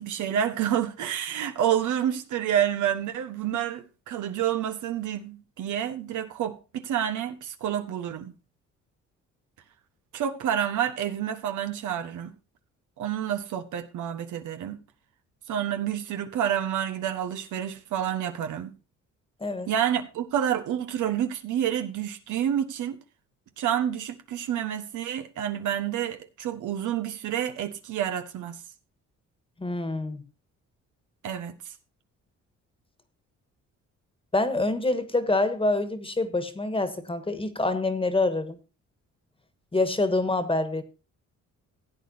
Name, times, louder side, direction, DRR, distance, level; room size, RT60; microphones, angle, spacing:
voice 1, 0.0-8.3 10.1-12.3 13.0-14.8 15.5-18.7 19.7-23.0 23.6-28.6 31.2-31.5, right 10 dB, 80° right, 1.3 m, -29 dB
voice 2, 29.6-30.2 34.3-38.5 39.7-40.8, left 2 dB, 20° left, 1.6 m, -26 dB
16.0 x 8.8 x 2.8 m
cardioid pair, 90°, 30 cm